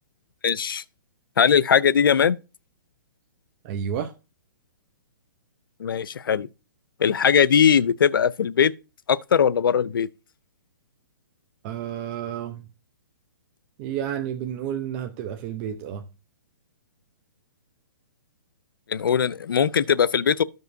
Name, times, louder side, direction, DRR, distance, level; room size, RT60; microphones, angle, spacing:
voice 1, 0.4-0.8 1.4-2.4 5.8-6.5 7.0-8.7 9.1-10.1 18.9-20.4, left 7 dB, 85° left, 0.5 m, -20 dB
voice 2, 3.6-4.1 11.6-12.7 13.8-16.0, right 9 dB, 35° right, 0.7 m, -31 dB
13.5 x 5.4 x 2.6 m
hypercardioid pair, 145°, 11 cm